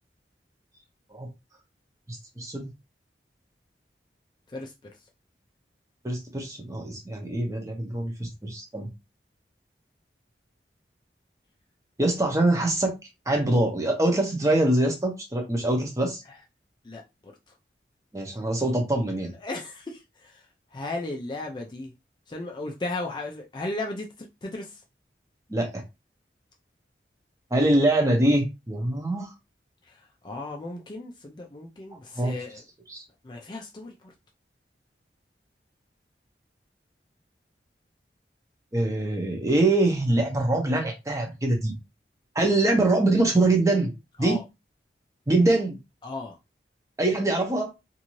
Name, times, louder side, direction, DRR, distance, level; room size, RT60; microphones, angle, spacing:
voice 1, 2.1-2.7 6.0-8.9 12.0-13.0 13.3-16.2 18.1-19.3 25.5-25.8 27.5-29.3 32.2-32.4 32.9-33.0 38.7-41.7 42.3-43.9 44.2-44.4 45.3-45.8 47.0-47.7, right 2 dB, 20° right, 0.7 m, -24 dB
voice 2, 16.8-17.3 19.4-20.4 20.7-21.9 22.3-24.1 24.4-24.8 29.9-30.0 30.2-32.6 33.2-34.1 44.2-44.4 46.0-46.3, left 2 dB, 25° left, 0.4 m, -35 dB
2.6 x 2.6 x 3.0 m
head